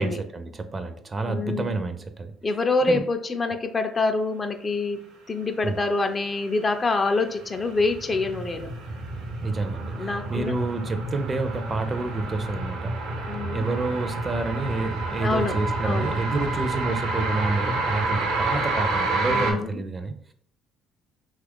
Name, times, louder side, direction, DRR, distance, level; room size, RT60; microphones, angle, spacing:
voice 1, 0.0-2.3 2.9-3.0 5.6-5.8 9.4-12.9 13.5-20.1, right 3 dB, 30° right, 9 dB, 0.4 m, -28 dB
voice 2, 1.3-1.7 2.4-5.0 5.3-8.7 10.0-10.5 13.2-13.7 15.2-15.6 15.8-16.2 19.3-19.8, left 3 dB, 35° left, 6 dB, 0.4 m, -26 dB
sound 1, 6.7-19.5, right 2 dB, 80° right, 0.6 m, -29 dB
2.9 x 2.4 x 3.5 m, 0.63 s
hypercardioid pair, 60°, 0 cm